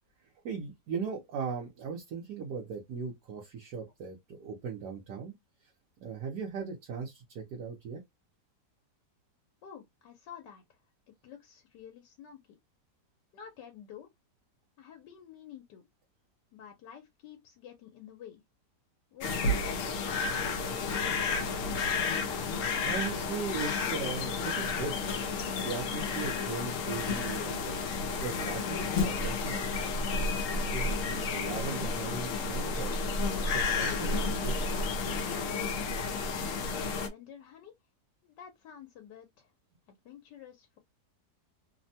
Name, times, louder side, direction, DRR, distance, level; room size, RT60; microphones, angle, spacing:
voice 1, 0.4-5.3 6.0-8.0 22.8-24.9 25.6-27.8 28.2-29.9 30.6-33.1 33.5-34.9, right 5 dB, 70° right, 1.3 m, -38 dB
voice 2, 9.6-10.8 11.1-12.4 13.3-14.1 14.8-15.9 16.5-18.4 19.1-20.2 20.6-21.7 36.7-37.7 38.2-39.5 39.9-40.8, left 8 dB, 85° left, 1.4 m, -50 dB
sound 1, 19.2-37.1, left 4 dB, 65° left, 0.9 m, -31 dB
3.4 x 2.2 x 2.7 m
omnidirectional pair, 1.8 m